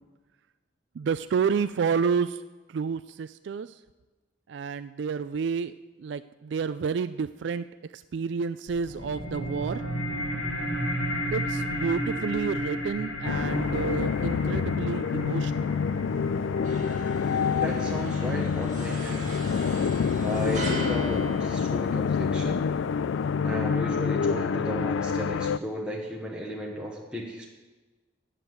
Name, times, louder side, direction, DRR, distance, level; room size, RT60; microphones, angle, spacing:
voice 1, 1.0-2.4 2.7-3.7 4.5-5.7 6.0-7.7 7.9-9.8 11.3-15.8, right 6 dB, 70° right, 12 dB, 0.3 m, -30 dB
sound 1, 8.7-19.7, equal, 60° left, 3.0 m, -34 dB
sound 2, 13.2-25.6, left 6 dB, 90° left, 0.4 m, -27 dB
sound 3, 16.6-22.4, right 2 dB, 40° right, 1.7 m, -41 dB
voice 2, 17.6-19.3 20.2-22.6 23.4-27.5, equal, 5° right, -3 dB, 1.2 m, -34 dB
10.5 x 7.5 x 7.8 m, 1.2 s
head